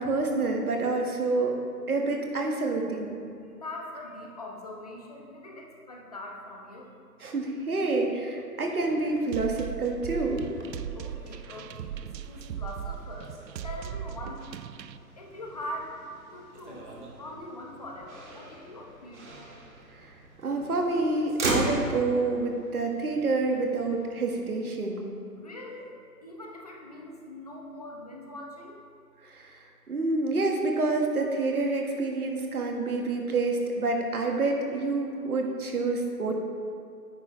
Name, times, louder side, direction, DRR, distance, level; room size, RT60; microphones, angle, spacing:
voice 1, 0.0-1.6 1.9-3.2 7.2-10.4 20.0-20.1 20.4-25.0 29.2-36.4, right 3 dB, 60° right, 1 dB, 1.7 m, -28 dB
voice 2, 3.6-6.9 10.9-13.3 13.6-14.6 15.2-15.9 16.3-16.9 17.2-19.2 25.4-25.9 26.2-28.8, left 1 dB, 25° left, -1 dB, 0.8 m, -42 dB
Motor vehicle (road), 8.6-24.4, right 2 dB, 45° right, 1.8 m, -39 dB
sound 1, 9.3-15.0, right 10 dB, 85° right, 0.6 m, -38 dB
10.0 x 9.3 x 3.2 m, 2.3 s
hypercardioid pair, 165°, 49 cm